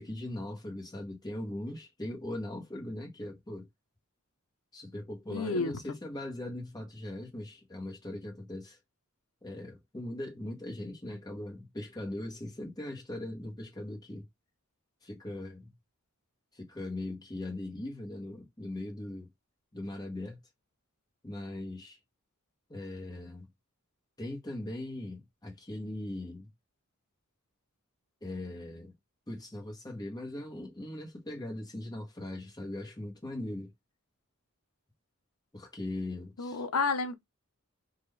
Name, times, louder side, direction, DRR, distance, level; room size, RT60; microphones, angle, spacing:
voice 1, 0.0-3.7 4.7-8.8 9.4-14.3 15.0-15.7 16.5-19.3 19.7-20.4 21.2-22.0 22.7-23.5 24.2-26.5 28.2-28.9 29.3-33.7 35.5-36.6, left 1 dB, 20° left, 1.1 m, -40 dB
voice 2, 5.3-5.7 36.4-37.2, left 4 dB, 80° left, 0.7 m, -30 dB
3.7 x 2.5 x 3.2 m
head